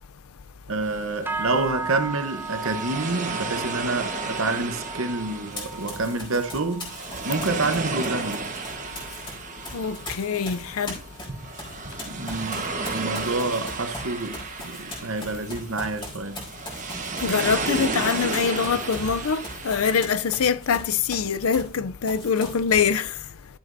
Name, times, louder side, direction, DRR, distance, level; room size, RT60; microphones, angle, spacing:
voice 1, 0.7-6.9 7.2-8.5 12.1-16.5, right 3 dB, 65° right, 1.0 m, -28 dB
sound 1, 0.8-20.1, right 4 dB, 35° right, 1.3 m, -33 dB
sound 2, 1.3-10.8 11.1-11.5 11.9-12.3 12.8-12.9, right 3 dB, 10° right, 0.4 m, -38 dB
Run, 5.5-9.3 9.6-21.8 22.0-23.0, left 1 dB, 20° left, 4.0 m, -40 dB
voice 2, 9.7-11.0 17.2-23.1, left 6 dB, 75° left, 0.5 m, -24 dB
12.0 x 7.8 x 2.7 m
head